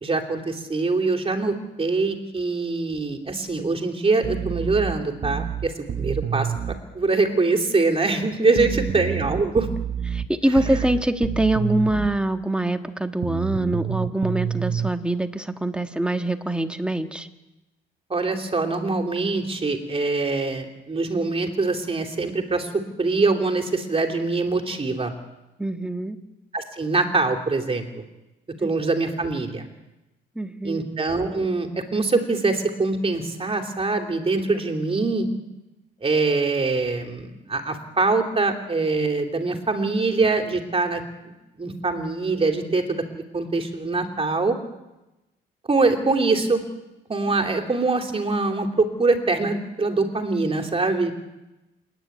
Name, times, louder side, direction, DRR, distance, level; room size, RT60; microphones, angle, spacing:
voice 1, 0.0-5.7 6.0-6.5 6.9-9.7 10.5-10.9 18.1-22.7 23.0-25.1 26.5-28.0 28.6-29.6 30.6-35.3 36.0-41.0 41.6-44.6 45.7-46.6 47.1-51.1, right 3 dB, 30° right, 4 dB, 3.1 m, -23 dB
sound 1, 4.2-6.8 8.6-12.2 13.2-14.9, right 8 dB, 55° right, 1.3 m, -28 dB
voice 2, 8.6-8.9 10.1-17.3 25.6-26.2 28.6-28.7 30.3-30.8, right 1 dB, 5° right, 6 dB, 1.6 m, -24 dB
28.5 x 10.0 x 9.3 m, 0.99 s
cardioid pair, 90°, 20 cm